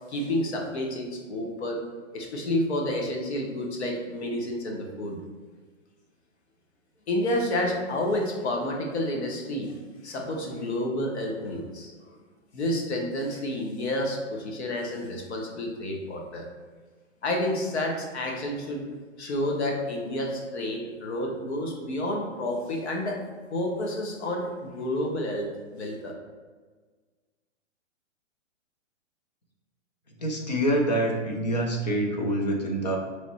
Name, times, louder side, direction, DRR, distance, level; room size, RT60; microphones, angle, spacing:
voice 1, 0.1-1.8 2.1-5.2 7.1-9.7 10.0-11.9 12.5-16.5 17.2-18.9 19.2-23.2 23.5-26.1, left 1 dB, 55° left, 1 dB, 0.9 m, -30 dB
voice 2, 30.2-33.0, right 1 dB, 35° left, 1 dB, 0.5 m, -26 dB
3.3 x 3.1 x 4.1 m, 1.4 s
hypercardioid pair, 175°, 39 cm